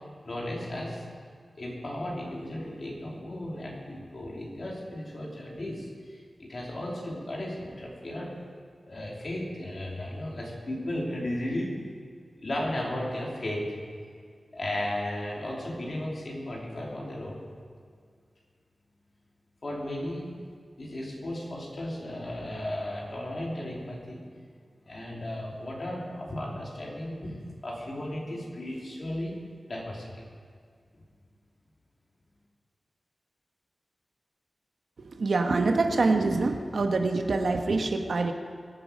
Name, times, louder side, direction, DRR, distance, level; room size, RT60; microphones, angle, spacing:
voice 1, 0.2-1.0 1.6-5.9 6.4-8.3 8.9-11.7 12.4-13.7 14.5-17.4 19.6-20.3 20.8-24.2 24.9-27.3 27.6-29.4 29.7-30.2, left 1 dB, 50° left, -3 dB, 3.3 m, -35 dB
voice 2, 35.2-38.3, right 3 dB, 75° right, 5 dB, 1.1 m, -25 dB
23.0 x 9.1 x 5.2 m, 2.1 s
wide cardioid pair, 110°, 0 cm